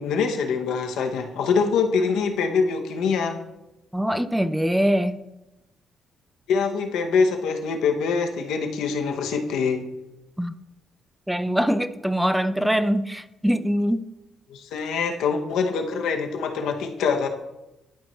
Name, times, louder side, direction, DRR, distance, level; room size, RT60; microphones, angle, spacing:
voice 1, 0.0-3.4 6.5-9.9 14.5-17.3, left 5 dB, 85° left, 0.9 m, -24 dB
voice 2, 3.9-5.2 10.4-10.5 11.3-14.1, equal, 5° right, 0.4 m, -23 dB
11.5 x 4.3 x 3.1 m
cardioid pair, 90°, 0 cm